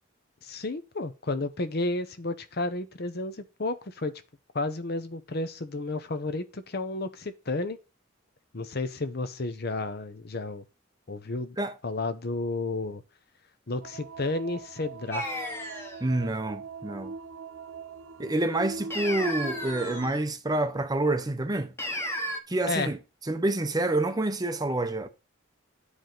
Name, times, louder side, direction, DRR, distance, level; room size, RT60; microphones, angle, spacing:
voice 1, 0.4-4.1 4.5-7.8 8.5-10.6 11.1-11.6 11.8-13.0 13.7-15.3 22.7-22.9, left 2 dB, 50° left, 0.8 m, -32 dB
sound 1, 13.8-20.1, right 4 dB, 80° right, 0.6 m, -41 dB
sound 2, 15.1-16.0 18.9-20.2 21.8-22.4, equal, 10° left, 1.1 m, -33 dB
voice 2, 16.0-17.1 18.2-21.7 22.5-23.0 23.3-25.1, right 2 dB, 20° right, 0.6 m, -28 dB
10.5 x 4.8 x 3.9 m
head